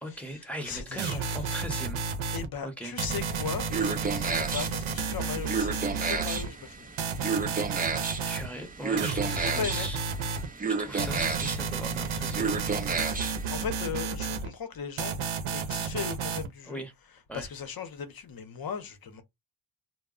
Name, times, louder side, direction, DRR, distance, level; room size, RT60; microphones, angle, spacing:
voice 1, 0.0-2.0 2.6-3.0 8.3-10.0 10.3-12.6 16.6-16.9 17.3-17.5, right 1 dB, 5° left, 0.8 m, -39 dB
voice 2, 0.7-1.4 2.3-6.9 9.3-9.9 13.1-15.1 15.5-16.8 17.3-19.2, left 6 dB, 50° left, 0.7 m, -37 dB
sound 1, 1.0-2.5 3.0-6.5 7.0-8.5 9.0-10.5 11.0-14.5 15.0-16.5, right 5 dB, 90° right, 0.7 m, -32 dB
sound 2, 3.3-13.5, right 4 dB, 20° right, 0.4 m, -32 dB
2.2 x 2.0 x 3.6 m
cardioid pair, 90°, 47 cm